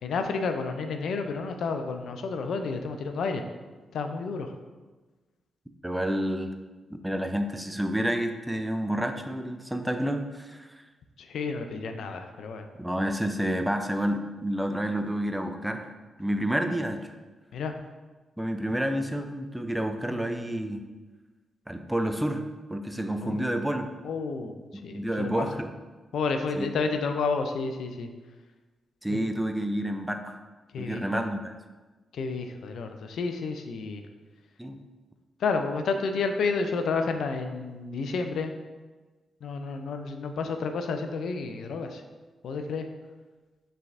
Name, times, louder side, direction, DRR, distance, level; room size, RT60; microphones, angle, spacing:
voice 1, 0.0-3.4 3.9-4.5 11.2-12.7 17.5-17.8 23.2-23.5 24.0-24.5 24.8-25.5 26.1-28.1 29.1-29.2 30.7-31.2 32.1-34.0 35.4-38.5 39.4-42.0 42.4-42.9, left 4 dB, 75° left, 6 dB, 0.4 m, -30 dB
voice 2, 5.8-6.5 6.9-10.8 12.8-15.9 16.2-17.1 18.4-20.8 21.7-22.4 22.7-23.9 24.9-25.7 26.5-26.7 29.0-30.4 30.8-31.6 34.6-34.8, right 1 dB, 5° right, 6 dB, 0.5 m, -29 dB
5.7 x 3.3 x 2.5 m, 1.3 s
supercardioid pair, 45°, 0 cm